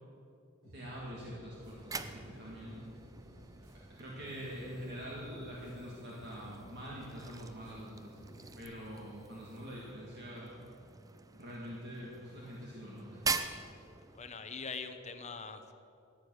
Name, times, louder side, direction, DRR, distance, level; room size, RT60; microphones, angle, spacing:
sound 1, 0.6-8.6, equal, 70° right, 3.6 m, -56 dB
voice 1, 0.7-2.8 4.0-8.2 8.6-10.6 11.3-13.2, equal, 50° right, -5 dB, 2.1 m, -45 dB
sound 2, 1.5-14.5, right 4 dB, 15° right, 0.5 m, -44 dB
voice 2, 14.1-15.7, left 5 dB, 30° left, 8 dB, 0.9 m, -43 dB
14.5 x 9.1 x 6.3 m, 2.6 s
head